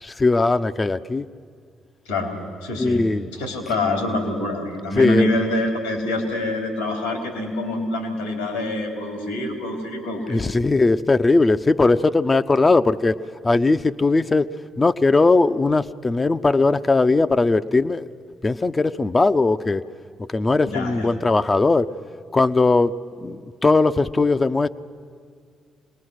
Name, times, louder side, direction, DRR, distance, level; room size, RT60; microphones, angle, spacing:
voice 1, 0.0-1.3 2.8-3.2 5.0-5.3 10.3-13.2 13.4-14.5 14.8-18.0 18.4-19.9 20.2-21.9 22.3-24.7, left 3 dB, 30° left, 11 dB, 0.6 m, -19 dB
voice 2, 2.6-10.4 20.6-21.1, left 1 dB, 85° left, 3 dB, 3.4 m, -26 dB
26.5 x 20.0 x 6.4 m, 2.1 s
hypercardioid pair, 45°, 0 cm